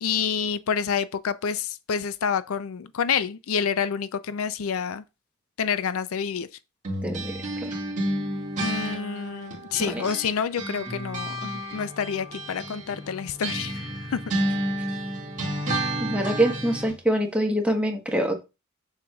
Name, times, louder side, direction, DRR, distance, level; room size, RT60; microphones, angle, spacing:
voice 1, 0.0-5.0 5.6-6.5 8.6-14.3, left 7 dB, 75° left, 0.5 m, -28 dB
sound 1, 6.8-10.3 10.6-17.0, right 1 dB, 35° right, 2.0 m, -31 dB
voice 2, 7.0-7.8 9.9-10.0 16.0-18.4, right 1 dB, 5° right, 1.1 m, -25 dB
7.0 x 6.4 x 2.3 m
head